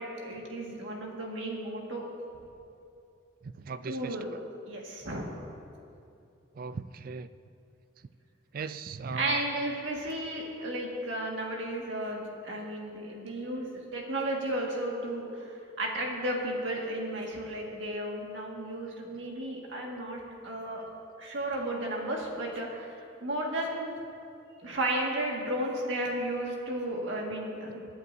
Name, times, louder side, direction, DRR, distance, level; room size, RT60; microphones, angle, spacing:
voice 1, 0.0-2.0 3.9-4.3 4.7-5.3 9.1-15.5 15.8-20.9 21.2-24.0 24.6-27.9, right 1 dB, 70° right, -1 dB, 1.9 m, -34 dB
voice 2, 3.4-4.4 6.5-7.3 8.0-8.1 8.5-9.4, right 5 dB, 45° right, 14 dB, 0.3 m, -38 dB
23.0 x 9.6 x 2.7 m, 2.6 s
head